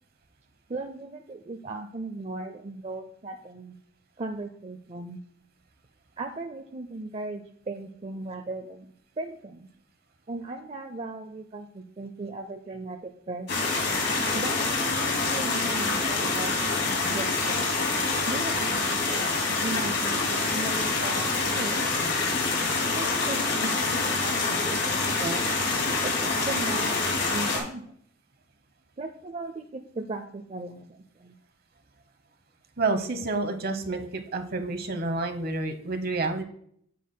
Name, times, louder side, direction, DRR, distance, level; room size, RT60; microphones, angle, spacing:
voice 1, 0.7-3.8 4.2-5.2 6.2-9.7 10.3-13.5 14.3-16.5 17.1-17.7 18.3-21.9 22.9-25.5 26.0-27.8 29.0-31.3, right 2 dB, 35° right, 5 dB, 0.5 m, -37 dB
sound 1, 13.5-27.6, left 3 dB, 70° left, 2.4 m, -26 dB
voice 2, 32.8-36.4, right 3 dB, 50° right, 8 dB, 1.0 m, -29 dB
9.3 x 8.2 x 2.2 m, 0.65 s
head